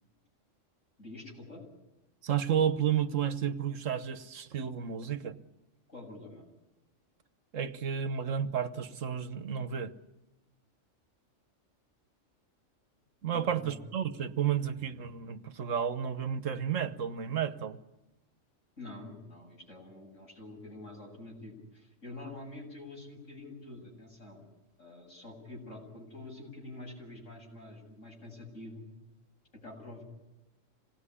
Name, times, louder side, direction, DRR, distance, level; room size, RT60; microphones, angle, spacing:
voice 1, 1.0-1.6 5.9-6.5 13.2-13.8 18.8-24.5 24.8-28.8 29.5-30.0, left 2 dB, 75° left, -1 dB, 8.2 m, -47 dB
voice 2, 2.2-5.3 7.5-9.9 13.2-17.8, right 8 dB, 75° right, 12 dB, 1.5 m, -32 dB
26.5 x 19.0 x 10.0 m, 1.0 s
omnidirectional pair, 1.3 m